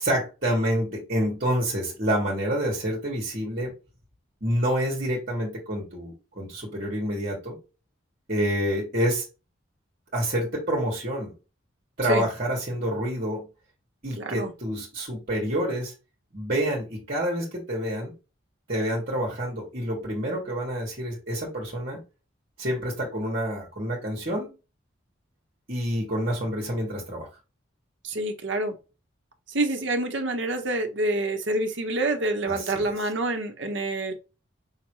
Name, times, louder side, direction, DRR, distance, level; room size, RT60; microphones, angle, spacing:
voice 1, 0.0-3.7 4.4-7.6 8.3-9.2 10.1-11.3 12.0-13.4 14.0-15.9 16.3-18.1 18.7-22.0 22.6-24.5 25.7-27.3 32.5-32.9, equal, 45° right, 1.6 m, -28 dB
voice 2, 14.2-14.5 28.0-28.7 29.5-34.1, right 2 dB, 65° right, 1.1 m, -27 dB
5.7 x 3.0 x 3.0 m
head